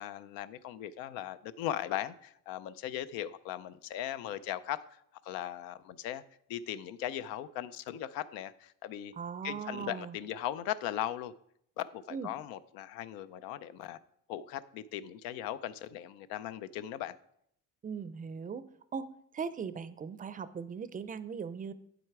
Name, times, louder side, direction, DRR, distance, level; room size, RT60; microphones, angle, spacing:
voice 1, 0.0-5.0 5.2-6.2 6.5-9.1 9.4-11.3 11.8-14.0 14.3-17.2, left 12 dB, 90° left, 0.6 m, -38 dB
voice 2, 9.1-10.2 12.1-12.3 17.8-18.7 18.9-21.7, right 6 dB, 25° right, 0.4 m, -39 dB
8.9 x 7.7 x 4.7 m
cardioid pair, 120°, 34 cm